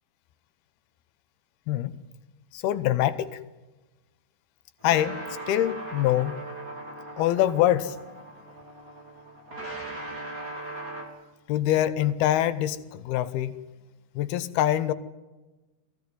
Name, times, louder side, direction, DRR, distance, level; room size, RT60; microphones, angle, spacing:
voice 1, 2.5-3.4 4.8-6.4 7.2-8.0 11.5-13.6 14.2-14.9, left 12 dB, 85° left, 2.9 m, -24 dB
sound 1, 4.8-11.1, right 2 dB, 25° right, 3.9 m, -39 dB
22.0 x 16.0 x 9.4 m
omnidirectional pair, 4.4 m